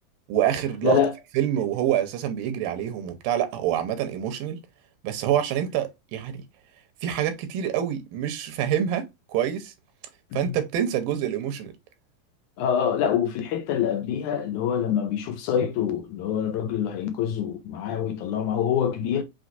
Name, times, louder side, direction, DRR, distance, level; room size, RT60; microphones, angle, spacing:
voice 1, 0.3-1.0 1.4-4.6 5.0-6.4 7.0-9.7 10.3-11.7, right 10 dB, 90° right, 2.6 m, -26 dB
voice 2, 0.8-1.1 10.3-10.6 12.6-19.2, left 8 dB, 80° left, 2.0 m, -25 dB
6.3 x 3.0 x 2.6 m
omnidirectional pair, 3.9 m